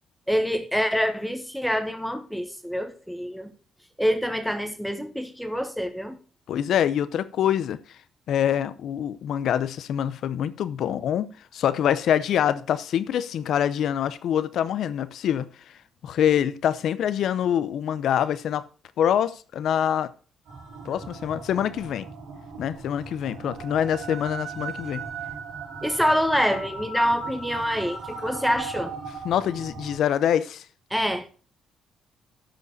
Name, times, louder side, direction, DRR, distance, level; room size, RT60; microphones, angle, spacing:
voice 1, 0.3-3.5 4.0-6.2 25.8-28.9 30.9-31.3, equal, ahead, 1.3 m, -26 dB
voice 2, 6.5-7.8 8.3-11.3 11.5-15.5 16.0-18.6 19.0-20.1 20.8-22.1 22.6-25.0 29.2-30.6, left 9 dB, 70° left, 0.7 m, -25 dB
sound 1, 20.5-30.0, right 4 dB, 90° right, 4.6 m, -37 dB
13.0 x 5.2 x 4.0 m
cardioid pair, 90°, 0 cm